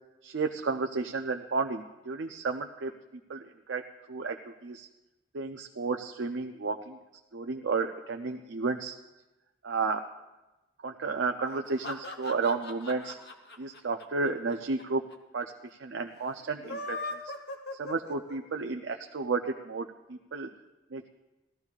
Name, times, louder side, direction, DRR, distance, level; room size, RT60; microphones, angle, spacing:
voice 1, 0.2-2.9 3.3-3.4 3.7-3.8 4.1-4.4 4.6-4.9 5.3-7.0 7.3-8.9 9.6-10.0 10.8-13.2 13.6-15.0 15.3-15.5 15.8-17.0 17.8-19.9 20.3-20.5 20.9-21.1, right 4 dB, 85° right, 4 dB, 0.6 m, -32 dB
sound 1, 11.5-14.8 15.1-15.2 15.4-15.5 16.5-18.6, left 2 dB, 60° left, 0.9 m, -39 dB
18.0 x 13.5 x 2.4 m, 1.0 s
head